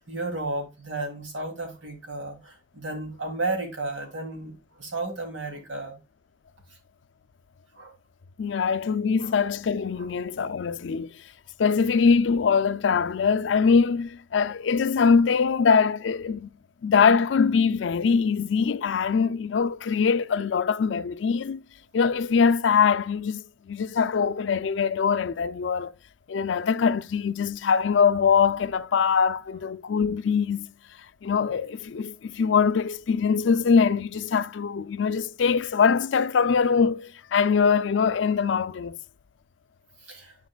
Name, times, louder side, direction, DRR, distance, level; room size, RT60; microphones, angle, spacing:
voice 1, 0.0-4.5 4.8-6.0 7.8-7.9 8.5-8.7 9.2-9.3 10.0-10.1 40.1-40.4, right 2 dB, 85° right, 2.9 m, -33 dB
voice 2, 8.4-11.1 11.6-16.5 16.8-21.6 21.9-25.9 26.3-30.7 31.2-39.0, left 6 dB, 70° left, 0.4 m, -23 dB
10.5 x 5.3 x 2.3 m
head